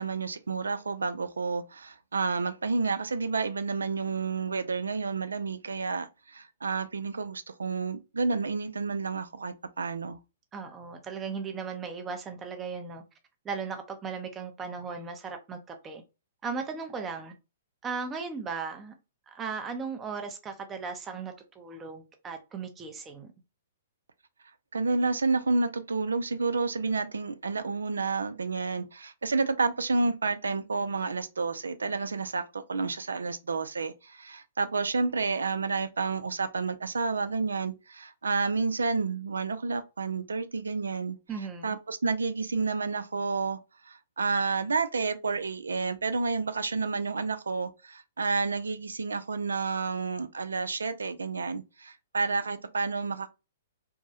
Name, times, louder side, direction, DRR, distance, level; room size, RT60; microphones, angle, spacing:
voice 1, 0.0-10.2 24.7-41.2 41.6-43.6 43.9-53.3, right 4 dB, 85° right, 0.3 m, -30 dB
voice 2, 10.5-13.0 13.4-16.0 16.4-17.3 17.8-18.9 19.3-23.3 41.3-41.8, right 5 dB, 20° right, 0.6 m, -37 dB
2.2 x 2.0 x 2.7 m
hypercardioid pair, 120°, 0 cm